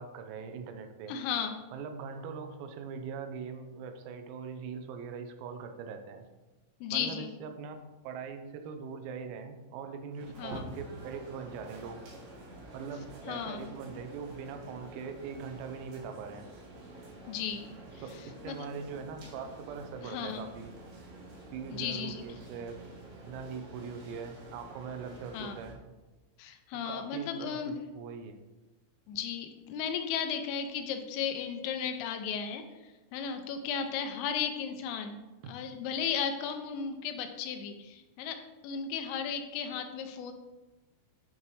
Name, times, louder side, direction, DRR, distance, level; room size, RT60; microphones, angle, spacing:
voice 1, 0.0-1.2 1.7-6.3 6.9-12.0 12.7-16.5 18.0-18.1 18.4-20.7 21.5-22.8 23.3-25.8 26.9-28.4 35.4-35.5, right 5 dB, 85° right, 6 dB, 3.5 m, -41 dB
voice 2, 1.1-1.6 6.8-7.3 10.4-10.7 13.3-13.7 17.3-17.7 18.5-18.6 20.0-20.4 21.7-22.2 25.3-25.6 26.4-27.7 29.1-35.2 35.5-38.4 38.6-40.3, left 7 dB, 80° left, 6 dB, 3.1 m, -35 dB
sound 1, 10.1-25.7, right 1 dB, 55° right, 3.0 m, -48 dB
10.0 x 5.4 x 3.2 m, 1.1 s
omnidirectional pair, 6.0 m